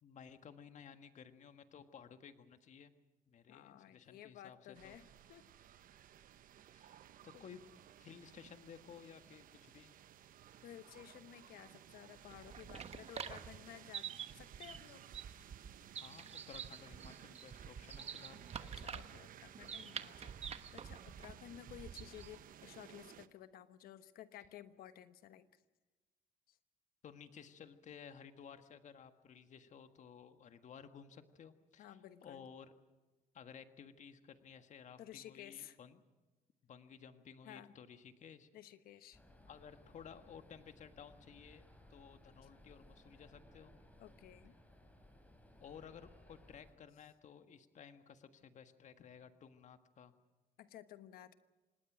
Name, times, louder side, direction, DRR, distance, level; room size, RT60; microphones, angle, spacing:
voice 1, 0.0-2.9 3.3-5.0 6.7-7.6 8.0-9.9 12.9-13.0 16.0-18.5 27.0-32.7 33.3-36.0 36.6-38.5 39.5-43.8 45.6-50.1, left 7 dB, 55° left, 9 dB, 1.7 m, -56 dB
voice 2, 3.5-5.5 7.3-7.4 10.6-15.0 18.8-25.5 31.8-32.5 35.0-35.8 37.4-37.7 38.5-39.2 44.0-44.6 50.6-51.3, left 12 dB, 85° left, 12 dB, 1.2 m, -55 dB
sound 1, 4.7-23.3, right 10 dB, 65° right, 1.0 m, -58 dB
sound 2, 12.1-22.4, right 7 dB, 45° right, 1.2 m, -48 dB
sound 3, 39.1-46.7, left 1 dB, 10° left, 5.0 m, -62 dB
26.5 x 19.5 x 6.2 m, 1.2 s
cardioid pair, 110°, 15 cm